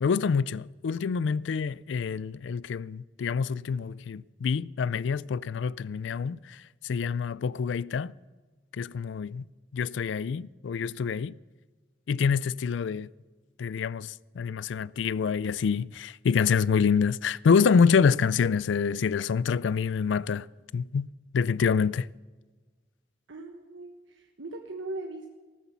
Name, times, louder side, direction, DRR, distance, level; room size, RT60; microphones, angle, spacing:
voice 1, 0.0-8.1 8.7-9.5 9.7-11.3 12.1-13.1 13.6-20.5 20.7-21.1 21.3-22.1, left 6 dB, 80° left, 0.4 m, -26 dB
voice 2, 23.3-25.3, right 2 dB, 90° right, 1.2 m, -39 dB
14.5 x 13.0 x 6.9 m
head